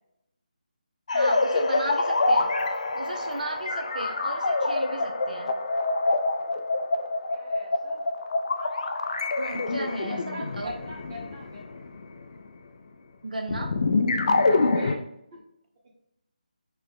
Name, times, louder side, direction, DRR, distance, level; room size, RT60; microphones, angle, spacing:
sound 1, 1.1-12.5 13.5-14.9, left 3 dB, 50° left, 0.3 m, -26 dB
voice 1, 1.1-2.5 2.9-5.5 9.4-10.7 13.2-13.7, right 2 dB, 65° right, 3 dB, 0.5 m, -35 dB
voice 2, 7.3-8.0 9.5-9.7 10.1-11.8 14.3-15.4 15.8-15.9, right 1 dB, 20° right, -3 dB, 0.9 m, -43 dB
4.4 x 2.0 x 3.4 m, 0.82 s
figure-of-eight pair, 155°, 5 cm